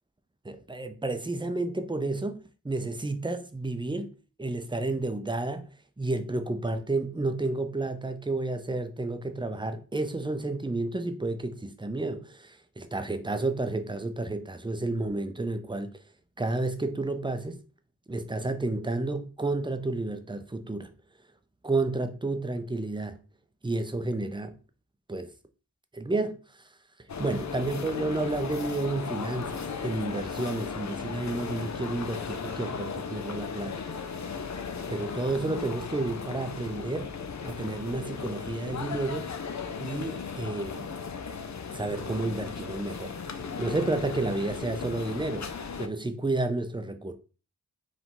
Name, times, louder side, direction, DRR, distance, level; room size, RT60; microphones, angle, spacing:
voice 1, 0.4-4.1 4.4-5.7 6.0-15.9 16.4-17.6 18.1-20.9 21.6-23.2 23.6-24.6 25.1-25.3 25.9-26.4 27.2-33.8 34.9-37.2 37.4-39.4 39.8-40.9 41.7-43.1 43.6-45.5 45.8-47.1, right 2 dB, 10° right, 0.7 m, -31 dB
sound 1, 27.1-45.9, left 5 dB, 45° left, 0.6 m, -36 dB
4.8 x 2.6 x 3.9 m
cardioid pair, 40°, 38 cm